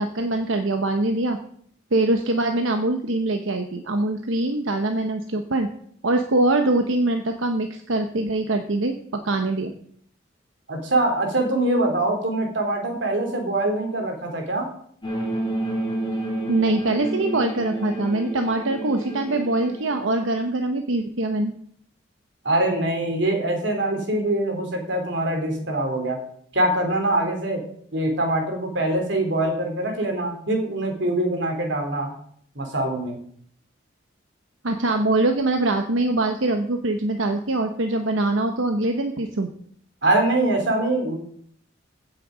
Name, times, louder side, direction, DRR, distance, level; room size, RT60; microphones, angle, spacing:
voice 1, 0.0-1.4 1.9-5.7 6.0-9.7 16.5-21.5 34.6-39.5, right 2 dB, 90° right, 5 dB, 1.0 m, -23 dB
voice 2, 10.7-14.7 22.4-26.2 26.5-27.6 27.9-32.1 32.5-33.2 40.0-41.1, right 1 dB, 65° right, 3 dB, 3.0 m, -23 dB
sound 1, 15.0-20.1, right 1 dB, 25° left, 3.3 m, -29 dB
15.5 x 6.7 x 5.0 m, 0.62 s
head